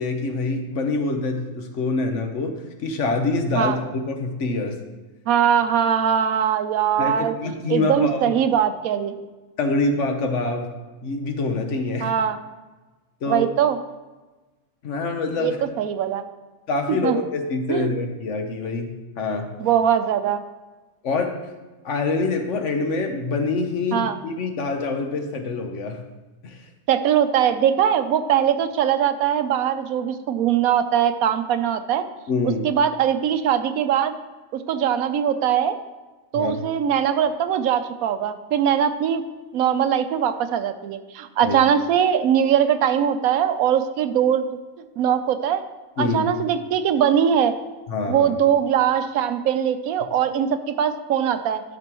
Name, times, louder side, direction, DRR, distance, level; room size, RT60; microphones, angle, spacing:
voice 1, 0.0-2.5 2.8-4.8 7.0-8.3 9.6-10.7 11.0-12.1 13.2-13.5 14.8-15.6 16.7-19.5 21.0-21.3 21.8-26.0 26.4-26.6 32.3-32.7 36.3-36.6 41.4-41.6 46.0-46.3 47.9-48.4, left 3 dB, 60° left, 4 dB, 1.2 m, -25 dB
voice 2, 5.3-9.2 12.0-12.4 13.3-13.8 15.4-15.5 15.8-16.2 16.9-17.2 17.7-17.9 19.6-20.4 23.9-24.2 26.9-32.1 32.6-34.1 34.5-35.8 36.3-39.2 39.5-44.6 45.0-45.6 46.0-47.6 48.1-51.6, right 9 dB, 85° right, 10 dB, 1.0 m, -21 dB
12.0 x 6.1 x 3.0 m, 1.2 s
omnidirectional pair, 1.5 m